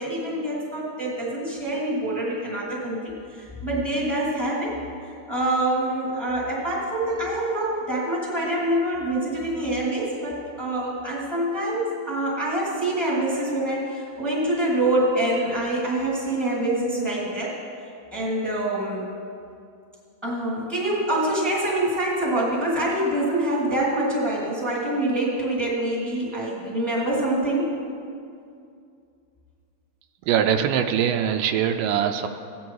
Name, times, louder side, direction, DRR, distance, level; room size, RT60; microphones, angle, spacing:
voice 1, 0.0-4.7 5.3-17.5 18.1-19.1 20.2-27.7, right 1 dB, ahead, -5 dB, 2.1 m, -25 dB
voice 2, 30.2-32.3, right 9 dB, 85° right, 7 dB, 2.2 m, -22 dB
15.5 x 9.2 x 4.7 m, 2.5 s
omnidirectional pair, 3.9 m